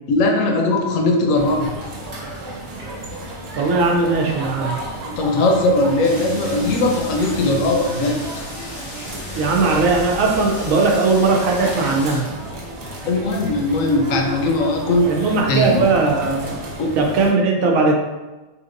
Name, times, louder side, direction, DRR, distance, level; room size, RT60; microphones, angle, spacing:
voice 1, 0.1-1.8 5.0-8.3 13.0-15.1 15.5-15.8 16.8-16.9, left 2 dB, 80° left, 1 dB, 1.0 m, -19 dB
sound 1, 1.3-17.3, right 1 dB, 55° right, 1.0 m, -32 dB
voice 2, 3.6-4.8 9.3-12.3 15.1-16.6 17.0-17.9, right 3 dB, 80° right, 0 dB, 1.0 m, -18 dB
sound 2, 6.0-12.2, left 1 dB, 20° left, 0.6 m, -36 dB
3.4 x 2.8 x 2.5 m, 1.1 s
omnidirectional pair, 1.4 m